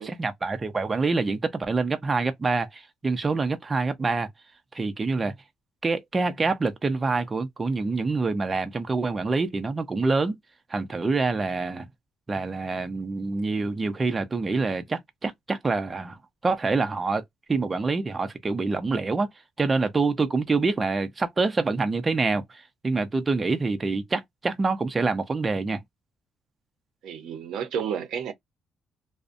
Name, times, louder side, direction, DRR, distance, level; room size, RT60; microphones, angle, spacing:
voice 1, 0.0-4.3 4.7-5.3 5.8-10.4 10.7-11.9 12.3-17.2 17.5-19.3 19.6-25.8, right 3 dB, 30° right, 0.5 m, -26 dB
voice 2, 27.0-28.3, right 8 dB, 80° right, 0.6 m, -31 dB
2.4 x 2.1 x 2.5 m
cardioid pair, 90°, 0 cm